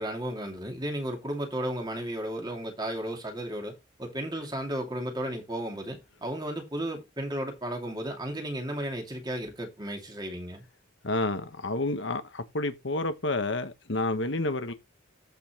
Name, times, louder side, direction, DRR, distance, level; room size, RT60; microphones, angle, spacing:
voice 1, 0.0-10.6, right 1 dB, 20° right, 2.6 m, -34 dB
voice 2, 11.0-14.7, left 2 dB, 65° left, 1.3 m, -29 dB
14.0 x 5.6 x 3.1 m
head